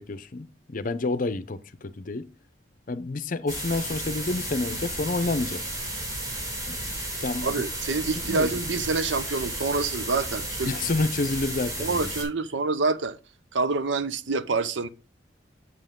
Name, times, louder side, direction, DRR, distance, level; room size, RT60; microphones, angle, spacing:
voice 1, 0.0-2.3 2.9-5.6 6.7-6.8 7.2-7.6 8.2-8.6 10.6-12.1, left 3 dB, 45° left, 0.6 m, -29 dB
sound 1, 3.5-12.2, right 1 dB, 20° right, 6.0 m, -33 dB
voice 2, 7.4-10.7 11.8-13.2 13.5-14.9, right 3 dB, 80° right, 0.7 m, -27 dB
8.0 x 7.9 x 3.7 m
head